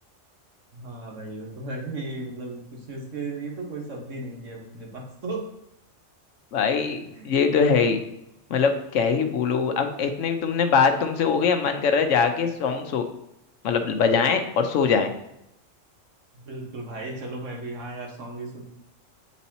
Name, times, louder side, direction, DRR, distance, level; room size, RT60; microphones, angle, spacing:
voice 1, 0.7-5.5 7.1-7.3 16.3-18.6, right 2 dB, 75° right, 0 dB, 1.6 m, -35 dB
voice 2, 6.5-7.0 7.2-8.0 8.5-13.0 13.6-15.1, left 5 dB, 80° left, 7 dB, 1.0 m, -22 dB
8.2 x 4.2 x 2.8 m, 0.81 s
omnidirectional pair, 1.3 m